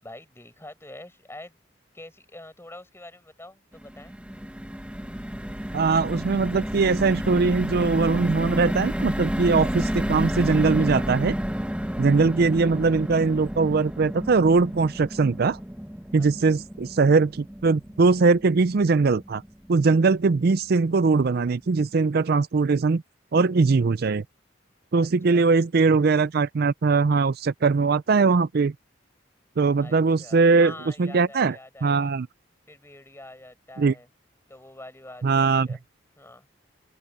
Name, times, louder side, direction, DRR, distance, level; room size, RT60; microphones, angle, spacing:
voice 1, 0.0-1.6 1.9-4.2 12.1-12.3 16.2-16.6 25.0-25.5 29.8-32.1 32.7-34.1 34.5-35.8 36.2-36.5, left 1 dB, 15° left, 6.4 m, -45 dB
sound 1, 3.7-20.0 20.4-20.6 20.8-21.1, equal, 5° right, 1.0 m, -31 dB
voice 2, 5.7-11.3 12.0-15.6 16.1-19.4 19.7-23.0 23.3-24.2 24.9-28.7 29.6-30.7 31.0-31.6 31.8-32.3 33.8-33.9 35.2-35.7, right 4 dB, 55° right, 0.4 m, -21 dB
open air
head